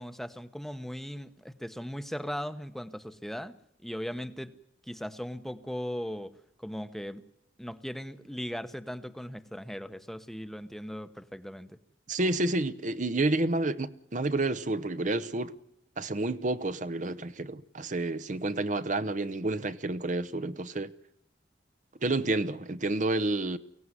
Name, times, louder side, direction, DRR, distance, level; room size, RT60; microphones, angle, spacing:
voice 1, 0.0-3.6 3.8-4.5 4.8-7.2 7.6-11.8, equal, ahead, 0.9 m, -38 dB
voice 2, 12.1-15.5 16.0-20.9 22.0-23.6, right 2 dB, 45° right, 0.8 m, -29 dB
23.5 x 17.5 x 9.7 m
head